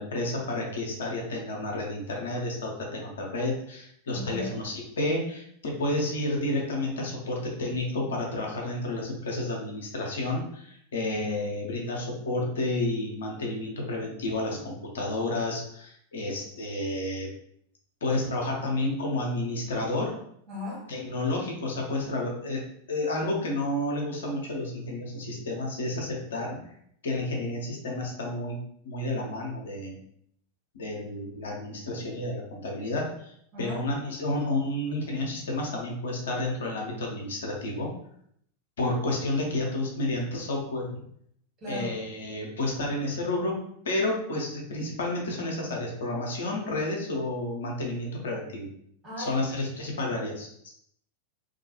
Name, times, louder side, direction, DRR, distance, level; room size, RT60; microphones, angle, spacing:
voice 1, 0.0-17.3 18.0-20.2 20.9-22.6 22.9-26.6 27.0-28.6 28.8-30.0 30.7-33.3 33.6-37.9 38.8-41.0 41.7-48.7 49.2-50.7, left 2 dB, 65° left, -1 dB, 0.6 m, -31 dB
voice 2, 4.1-4.6 20.5-20.9 33.5-33.8 41.6-42.0 49.0-49.5, left 2 dB, 30° right, -6 dB, 1.4 m, -36 dB
2.3 x 2.2 x 2.8 m, 0.69 s
figure-of-eight pair, 90°, 0 cm